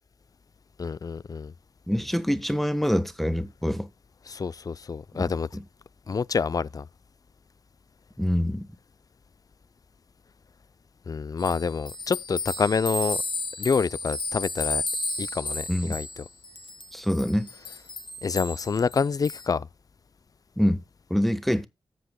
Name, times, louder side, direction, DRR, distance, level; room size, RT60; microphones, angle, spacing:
voice 1, 0.8-1.5 4.3-5.5 6.1-6.9 11.1-13.2 13.6-14.8 15.2-16.2 18.2-19.7, left 5 dB, 40° left, 0.5 m, -27 dB
voice 2, 1.9-3.9 5.1-5.2 5.5-5.6 8.2-8.7 15.7-15.9 16.9-17.5 20.6-20.8 21.1-21.7, equal, ahead, 1.2 m, -25 dB
sound 1, 11.4-19.5, left 3 dB, 60° left, 2.0 m, -33 dB
14.0 x 7.7 x 2.2 m
cardioid pair, 45°, 9 cm